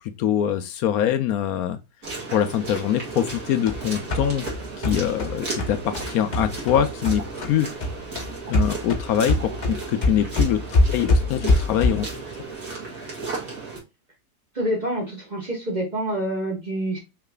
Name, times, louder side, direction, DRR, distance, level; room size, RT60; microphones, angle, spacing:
voice 1, 0.2-1.8 2.3-4.5 4.8-7.7 8.5-12.1, left 10 dB, 70° left, 1.0 m, -24 dB
sound 1, 2.0-13.8, right 3 dB, 55° right, 2.3 m, -35 dB
sound 2, 3.3-7.6 7.8-12.2, left 2 dB, 35° left, 0.8 m, -24 dB
voice 2, 14.5-17.0, right 1 dB, 30° right, 1.3 m, -27 dB
5.8 x 3.2 x 2.3 m
omnidirectional pair, 1.8 m